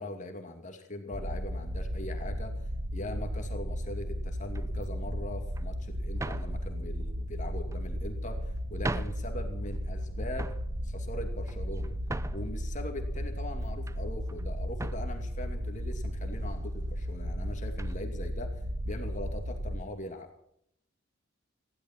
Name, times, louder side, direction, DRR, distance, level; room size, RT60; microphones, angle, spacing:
voice 1, 0.0-2.6 2.9-10.5 10.8-12.0 12.3-20.3, left 1 dB, 40° left, 5 dB, 2.5 m, -41 dB
sound 1, 1.1-19.8, equal, 60° right, 1.8 m, -35 dB
sound 2, 4.5-4.8 5.6-5.7 6.2-6.6 7.5-8.1 8.6-8.7 8.8-9.3 9.7-10.0 10.3-10.7 11.3-12.6 13.1-14.0 14.3-14.5 14.7-15.1 15.9-16.0 16.3-16.5 17.8-18.0, right 2 dB, 15° right, 0.6 m, -39 dB
20.5 x 16.0 x 4.4 m, 0.71 s
head